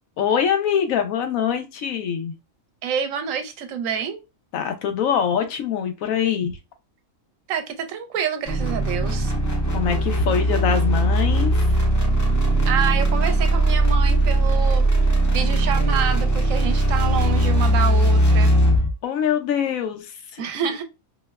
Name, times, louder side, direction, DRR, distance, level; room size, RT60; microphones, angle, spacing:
voice 1, 0.2-2.3 4.5-6.6 9.7-11.6 19.0-20.4, left 8 dB, 80° left, 1.0 m, -24 dB
voice 2, 2.8-4.2 7.5-9.3 12.6-14.9 15.3-18.5 20.4-20.8, right 7 dB, 75° right, 1.0 m, -27 dB
sound 1, 8.5-18.9, right 1 dB, 25° left, 0.4 m, -19 dB
4.3 x 2.0 x 2.3 m
omnidirectional pair, 1.5 m